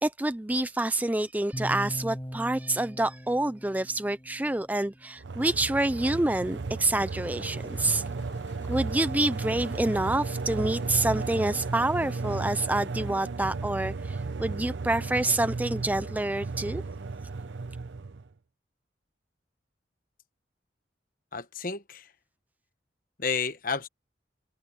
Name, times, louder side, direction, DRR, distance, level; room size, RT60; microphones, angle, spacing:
voice 1, 0.0-8.0 8.7-16.8, right 2 dB, 10° right, 0.4 m, -27 dB
sound 1, 1.5-5.6, equal, 15° left, 5.8 m, -40 dB
sound 2, 5.2-18.3, right 4 dB, 75° right, 0.7 m, -34 dB
sound 3, 7.6-12.7, left 4 dB, 85° left, 2.3 m, -53 dB
voice 2, 21.3-22.1 23.2-23.9, left 5 dB, 50° left, 1.1 m, -31 dB
head